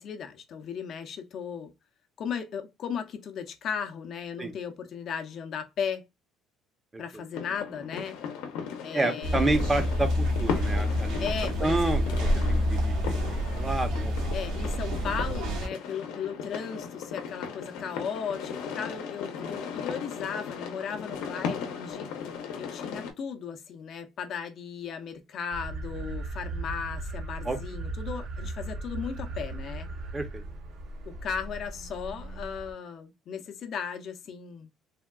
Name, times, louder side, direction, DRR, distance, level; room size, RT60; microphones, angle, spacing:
voice 1, 0.0-1.7 2.2-6.0 7.0-8.2 8.8-9.6 11.2-12.1 14.3-22.1 22.6-29.9 31.1-34.7, left 7 dB, 50° left, 0.5 m, -36 dB
voice 2, 6.9-7.2 8.9-11.3 11.6-13.1 13.5-14.1 27.4-27.6 30.1-30.4, right 2 dB, 15° right, 0.6 m, -29 dB
sound 1, 7.3-23.1, left 6 dB, 90° left, 0.7 m, -37 dB
sound 2, 9.2-15.7, equal, 85° right, 1.0 m, -28 dB
sound 3, 25.5-32.7, right 2 dB, 55° right, 0.7 m, -37 dB
3.4 x 2.2 x 2.2 m
cardioid pair, 125°, 0 cm